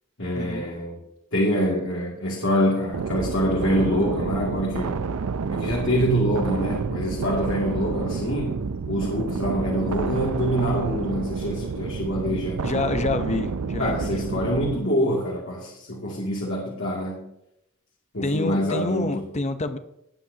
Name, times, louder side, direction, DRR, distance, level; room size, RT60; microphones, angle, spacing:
voice 1, 0.2-1.0 1.3-5.1 5.5-8.6 8.9-12.6 13.8-17.2 18.1-19.3, equal, 60° left, -3 dB, 2.4 m, -25 dB
sound 1, 2.9-14.8, right 5 dB, 85° right, 0.5 m, -29 dB
voice 2, 12.6-14.3 18.2-19.8, left 3 dB, 30° left, 9 dB, 0.7 m, -27 dB
19.0 x 9.0 x 2.8 m, 0.81 s
head